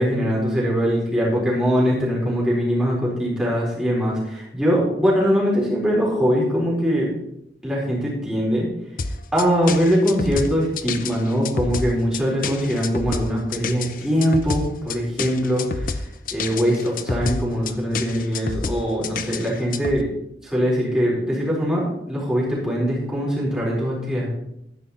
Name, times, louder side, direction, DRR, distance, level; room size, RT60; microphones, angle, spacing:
voice 1, 0.0-7.1 7.6-8.7 9.3-16.0 16.3-20.1 20.4-24.4, equal, 5° right, -6 dB, 4.4 m, -22 dB
sound 1, 9.0-20.0, left 4 dB, 50° left, 0.7 m, -28 dB
13.0 x 9.9 x 4.3 m, 0.79 s
head